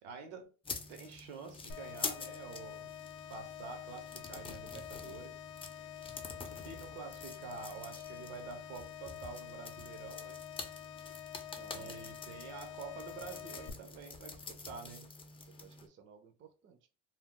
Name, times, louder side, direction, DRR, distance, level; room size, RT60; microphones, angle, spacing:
voice 1, 0.0-0.5 0.9-2.9 3.3-5.5 6.6-10.4 11.7-15.1, right 5 dB, 80° right, 0.8 m, -48 dB
sound 1, 0.6-15.9, left 4 dB, 15° left, 0.5 m, -47 dB
sound 2, 1.7-13.7, left 12 dB, 65° left, 0.6 m, -48 dB
voice 2, 11.5-12.0 15.4-16.9, right 7 dB, 35° right, 0.5 m, -56 dB
2.3 x 2.1 x 3.7 m
supercardioid pair, 100°, 33 cm